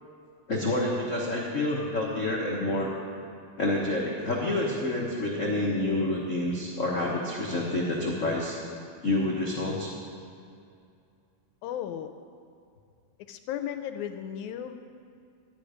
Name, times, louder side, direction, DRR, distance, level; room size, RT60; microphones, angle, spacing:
voice 1, 0.5-2.9 3.6-8.6 9.0-9.9, left 2 dB, 65° left, -3 dB, 0.7 m, -28 dB
voice 2, 11.6-12.1 13.3-14.8, left 10 dB, 85° left, 8 dB, 1.9 m, -35 dB
13.5 x 10.5 x 5.0 m, 2.4 s
omnidirectional pair, 3.4 m